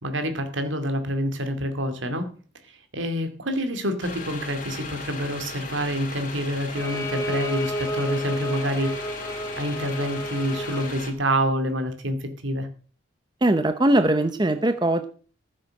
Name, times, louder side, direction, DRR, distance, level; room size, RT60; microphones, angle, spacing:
voice 1, 0.0-2.3 2.7-9.0 9.6-12.7, equal, 75° right, 7 dB, 2.4 m, -27 dB
sound 1, 4.0-11.1, left 3 dB, 40° left, 2.4 m, -37 dB
Bowed string instrument, 6.7-11.0, equal, 15° left, 1.7 m, -31 dB
voice 2, 13.4-15.1, right 1 dB, 20° right, 9 dB, 0.7 m, -21 dB
14.5 x 7.6 x 6.5 m, 0.40 s
head